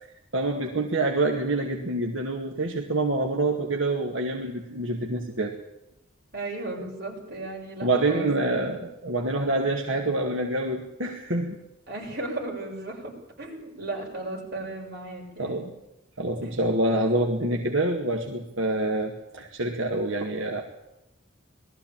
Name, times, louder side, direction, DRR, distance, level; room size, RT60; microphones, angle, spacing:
voice 1, 0.3-5.5 7.8-11.6 15.4-15.7 16.2-20.6, right 2 dB, 80° right, 1 dB, 2.2 m, -26 dB
voice 2, 6.3-8.9 11.9-15.7 16.4-16.6, right 2 dB, 50° right, -2 dB, 7.2 m, -36 dB
20.0 x 14.5 x 9.0 m, 0.92 s
head